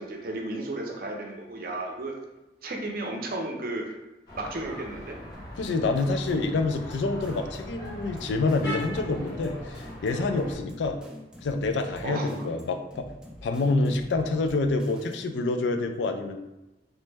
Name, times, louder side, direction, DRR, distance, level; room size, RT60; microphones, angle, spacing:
voice 1, 0.0-2.1 2.6-4.0 4.3-5.2 12.0-12.4, right 2 dB, 55° right, 1 dB, 0.6 m, -33 dB
sound 1, 4.3-10.6, equal, 60° left, 1.3 m, -40 dB
sound 2, 5.3-15.4, left 1 dB, 5° right, 0.4 m, -47 dB
voice 2, 5.6-11.0 11.4-13.1 13.4-16.4, left 3 dB, 90° left, 6 dB, 0.3 m, -27 dB
3.1 x 2.1 x 3.3 m, 0.99 s
head